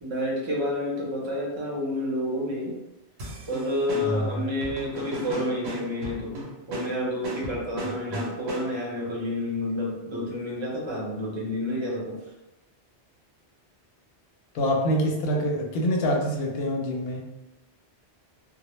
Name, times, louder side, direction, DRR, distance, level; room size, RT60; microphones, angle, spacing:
voice 1, 0.0-2.8 3.5-6.4 6.7-12.2, left 1 dB, 30° right, -4 dB, 0.6 m, -29 dB
sound 1, 3.2-9.0, right 1 dB, 75° right, 0.9 m, -36 dB
voice 2, 4.0-4.4 8.1-8.2 14.5-17.3, equal, 70° left, 0 dB, 0.8 m, -26 dB
2.1 x 2.0 x 3.0 m, 0.95 s
omnidirectional pair, 1.1 m